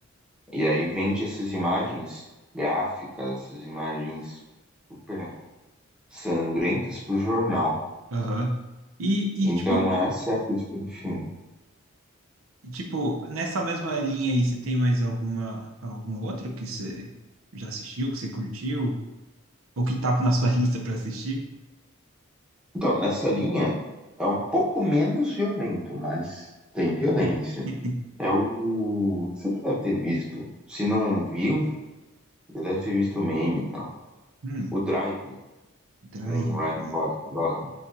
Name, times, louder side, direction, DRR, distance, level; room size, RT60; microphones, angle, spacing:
voice 1, 0.5-2.2 2.5-4.4 5.1-5.3 6.1-7.8 9.4-11.3 22.7-23.7 24.2-26.5 26.7-27.6 28.2-31.7 32.5-33.9 34.7-35.3 36.3-37.7, left 1 dB, 5° right, -6 dB, 1.0 m, -27 dB
voice 2, 8.1-8.6 9.0-9.9 12.6-17.1 17.5-18.9 19.8-21.5 27.2-27.3 27.7-28.0 34.4-34.7 36.1-37.0, right 1 dB, 85° right, 2 dB, 0.6 m, -27 dB
6.8 x 2.4 x 2.6 m, 1.0 s
head